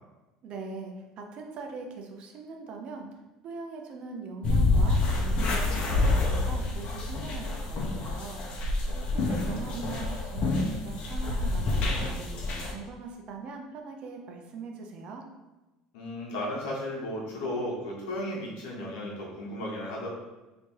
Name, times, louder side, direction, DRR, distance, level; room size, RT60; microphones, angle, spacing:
voice 1, 0.4-3.1 3.4-8.4 9.1-15.2, right 4 dB, 50° right, 3 dB, 0.7 m, -41 dB
sound 1, 4.4-12.7, left 2 dB, 50° left, 0.9 m, -27 dB
voice 2, 8.9-9.6 15.9-20.1, left 1 dB, 85° left, -4 dB, 1.5 m, -35 dB
3.3 x 2.9 x 4.6 m, 1.1 s
supercardioid pair, 110°, 2 cm